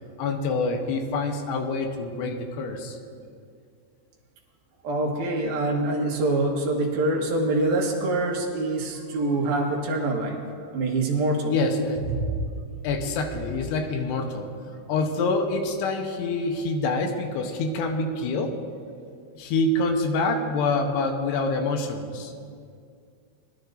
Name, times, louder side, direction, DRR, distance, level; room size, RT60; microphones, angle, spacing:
voice 1, 0.2-3.0 11.5-12.0 12.8-14.5 14.9-18.5 19.4-22.3, left 3 dB, 75° left, 4 dB, 2.8 m, -26 dB
voice 2, 4.8-10.4 10.7-11.6, right 2 dB, 65° right, -1 dB, 3.0 m, -25 dB
22.0 x 11.5 x 2.6 m, 2.2 s
omnidirectional pair, 5.2 m